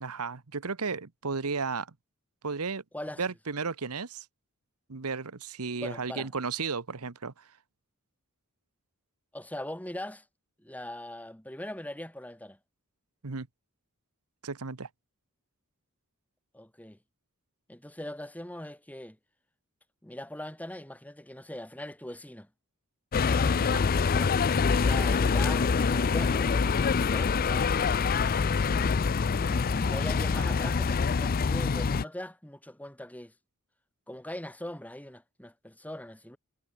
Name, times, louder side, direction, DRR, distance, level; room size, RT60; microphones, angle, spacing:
voice 1, 0.0-1.9 2.4-2.8 3.2-4.3 4.9-7.5 13.2-13.5 14.4-14.9 23.6-23.8, right 4 dB, 80° right, 1.1 m, -34 dB
voice 2, 5.8-6.3 9.3-10.2 10.6-12.6 16.5-17.0 17.7-19.2 20.0-22.5 24.1-24.3 24.6-28.0 29.2-33.3 34.1-36.4, left 1 dB, 5° left, 3.4 m, -41 dB
sound 1, 23.1-32.0, left 5 dB, 40° left, 0.5 m, -25 dB
head